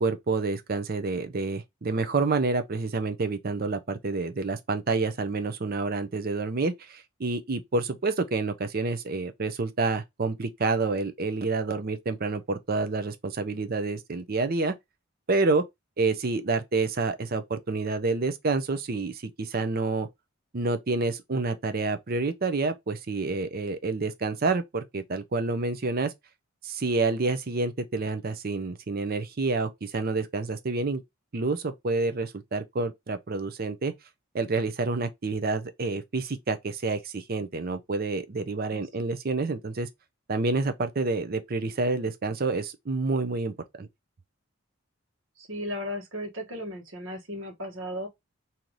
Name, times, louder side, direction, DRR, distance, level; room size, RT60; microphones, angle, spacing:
voice 1, 0.0-14.7 15.3-15.6 16.0-20.1 20.5-26.1 26.6-31.0 31.3-33.9 34.3-39.9 40.3-43.9, right 3 dB, 45° right, 0.6 m, -28 dB
voice 2, 45.4-48.1, equal, 65° right, 1.3 m, -35 dB
3.1 x 2.8 x 3.8 m
head